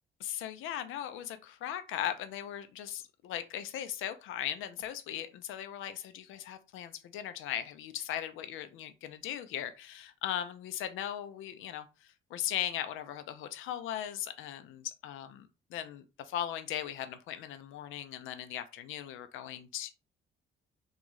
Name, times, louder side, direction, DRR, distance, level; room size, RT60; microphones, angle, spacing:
voice 1, 0.2-19.9, left 11 dB, 90° left, 0.5 m, -38 dB
3.6 x 2.3 x 3.0 m
cardioid pair, 90°, 20 cm